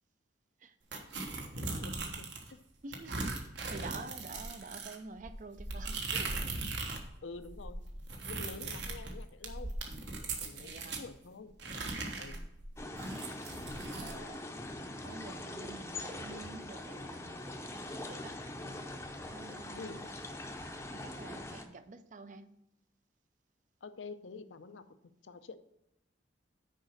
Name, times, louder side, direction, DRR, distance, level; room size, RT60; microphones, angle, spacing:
sound 1, 0.9-2.5 2.9-7.1 7.4-11.1 11.6-14.2, right 3 dB, 65° right, 1.3 m, -39 dB
voice 1, 1.4-2.6 7.2-7.8 8.3-9.7 10.3-11.5 12.2-12.5 19.8-20.0 23.8-25.6, left 4 dB, 80° left, 11 dB, 0.6 m, -48 dB
voice 2, 2.8-6.6 10.6-11.0 12.0-12.6 13.9-14.4 15.0-18.4 19.3-20.1 20.9-22.6, right 3 dB, 40° right, 11 dB, 0.5 m, -49 dB
sound 2, 12.8-21.6, left 1 dB, 15° left, 0.6 m, -43 dB
6.5 x 5.0 x 6.4 m, 0.84 s
head